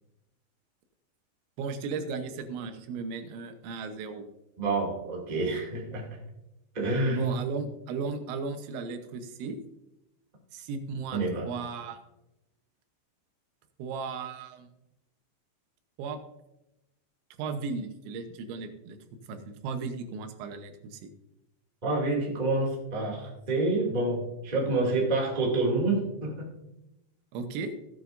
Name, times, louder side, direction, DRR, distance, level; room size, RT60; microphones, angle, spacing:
voice 1, 1.6-4.2 7.1-9.6 10.5-11.2 11.4-12.0 13.8-14.7 16.0-16.2 17.4-19.0 19.3-21.1 27.3-27.7, right 4 dB, 85° right, 7 dB, 3.4 m, -35 dB
voice 2, 4.6-6.2 6.7-7.4 11.1-11.5 21.8-26.5, right 2 dB, 20° right, -2 dB, 1.3 m, -28 dB
16.0 x 9.3 x 2.6 m, 0.91 s
omnidirectional pair, 5.1 m